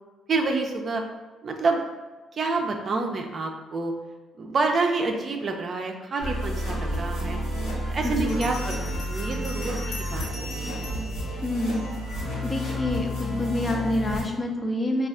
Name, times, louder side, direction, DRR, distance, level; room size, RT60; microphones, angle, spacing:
voice 1, 0.3-1.0 1.4-1.8 2.3-3.9 4.4-7.4 7.9-8.8 9.1-10.9, right 3 dB, 45° right, 3 dB, 0.4 m, -28 dB
sound 1, 6.2-14.2, equal, 90° left, 1.0 m, -30 dB
voice 2, 8.0-8.4 11.4-11.9 12.4-15.1, left 1 dB, 30° left, 2 dB, 0.5 m, -27 dB
Bell, 8.3-12.2, left 2 dB, 70° left, 1.2 m, -41 dB
4.2 x 2.4 x 2.4 m, 1.2 s
cardioid pair, 90°, 0 cm